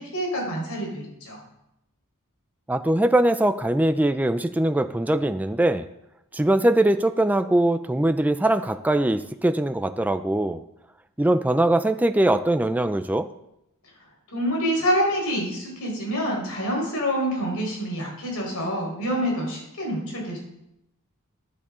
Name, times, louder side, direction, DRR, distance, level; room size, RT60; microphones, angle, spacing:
voice 1, 0.0-1.4 14.3-20.4, equal, 75° left, -1 dB, 4.5 m, -27 dB
voice 2, 2.7-5.8 6.3-10.6 11.2-13.3, right 1 dB, 5° right, 9 dB, 0.3 m, -21 dB
14.0 x 11.0 x 3.7 m, 0.86 s
head